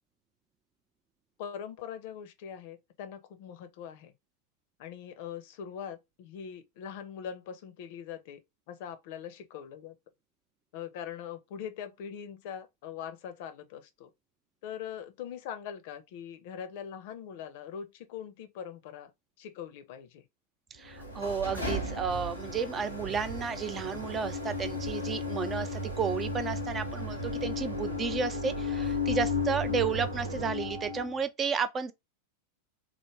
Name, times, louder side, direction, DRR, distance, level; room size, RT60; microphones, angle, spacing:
voice 1, 1.4-4.1 4.8-8.4 8.7-9.9 10.7-14.1 14.6-19.1 19.4-20.2, left 8 dB, 50° left, 0.6 m, -42 dB
voice 2, 20.7-31.9, right 6 dB, 20° right, 0.4 m, -32 dB
sound 1, 20.8-31.2, left 3 dB, 90° right, 1.0 m, -34 dB
3.3 x 2.1 x 3.0 m
figure-of-eight pair, 90°, 0 cm